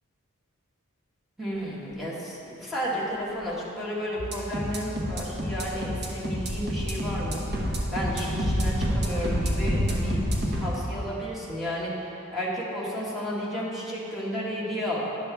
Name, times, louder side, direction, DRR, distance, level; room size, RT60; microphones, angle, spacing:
voice 1, 1.4-7.5 7.9-10.2 10.6-15.0, equal, ahead, -7 dB, 1.5 m, -32 dB
sound 1, 4.2-10.7, equal, 50° right, 1.1 m, -31 dB
sound 2, 4.9-6.0 6.4-10.6, equal, 45° left, 0.9 m, -30 dB
10.5 x 6.7 x 3.4 m, 2.8 s
head